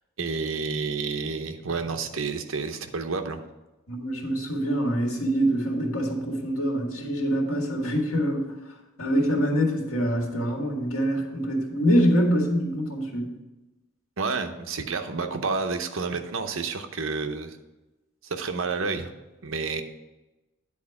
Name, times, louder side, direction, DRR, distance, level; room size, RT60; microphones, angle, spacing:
voice 1, 0.2-3.4 14.2-17.6 18.2-19.1 19.4-19.8, right 4 dB, 65° right, 6 dB, 0.7 m, -30 dB
voice 2, 3.9-8.5 9.0-13.3, equal, 85° left, 0 dB, 1.9 m, -25 dB
9.9 x 4.3 x 5.9 m, 1.1 s
head